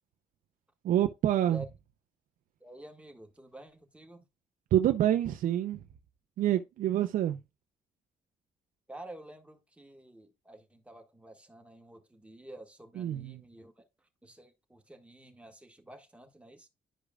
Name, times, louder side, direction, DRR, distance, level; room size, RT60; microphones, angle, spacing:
voice 1, 0.8-1.6 4.7-5.8 6.4-7.4 13.0-13.4, right 12 dB, 80° right, 0.6 m, -27 dB
voice 2, 2.6-4.2 8.9-16.7, right 1 dB, 10° right, 1.7 m, -50 dB
11.0 x 5.0 x 2.3 m
cardioid pair, 85°, 14 cm